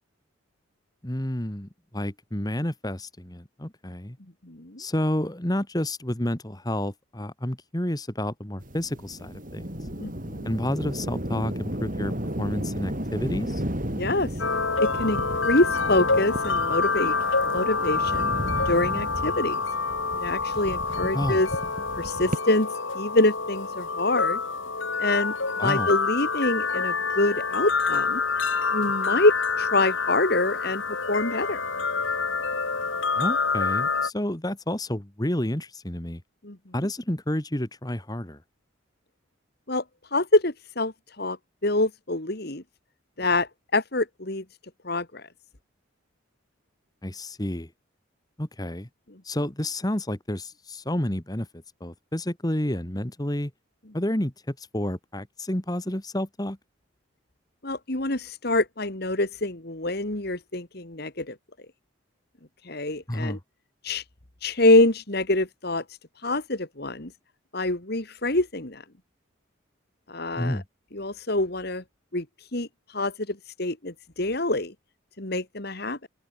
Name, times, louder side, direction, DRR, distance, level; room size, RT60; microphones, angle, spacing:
voice 1, 1.0-4.2 4.8-9.7 10.4-13.6 21.1-21.4 25.6-25.9 33.1-36.2 36.7-38.4 47.0-47.7 48.4-48.9 49.2-53.5 53.9-56.6 63.1-63.4 70.4-70.6, left 1 dB, 20° left, 1.7 m, -30 dB
voice 2, 4.4-4.8 10.0-10.5 14.0-14.4 14.8-17.1 17.5-18.3 18.7-19.6 20.1-21.5 22.0-24.4 25.0-25.3 25.6-28.2 28.7-30.8 31.1-31.6 36.4-36.6 39.7-39.8 40.1-41.4 41.6-42.6 43.2-44.4 44.8-45.3 57.6-61.4 62.6-63.4 63.8-64.0 64.4-67.1 67.5-68.8 70.1-70.6 70.9-71.8 72.1-74.7 75.2-76.1, left 2 dB, 50° left, 2.3 m, -25 dB
sound 1, 8.6-22.4, equal, 40° right, 6.2 m, -34 dB
sound 2, 14.4-34.1, left 4 dB, 70° left, 5.0 m, -27 dB
open air
head